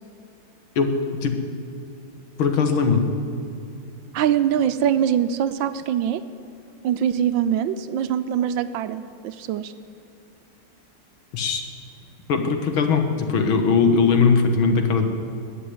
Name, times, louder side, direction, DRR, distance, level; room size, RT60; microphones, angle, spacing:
voice 1, 2.4-3.1 11.3-11.6 12.3-15.1, left 5 dB, 80° left, 5 dB, 2.2 m, -19 dB
voice 2, 4.1-6.2 6.8-9.7, right 9 dB, 75° right, 11 dB, 1.3 m, -23 dB
20.5 x 6.9 x 9.5 m, 2.6 s
omnidirectional pair, 2.2 m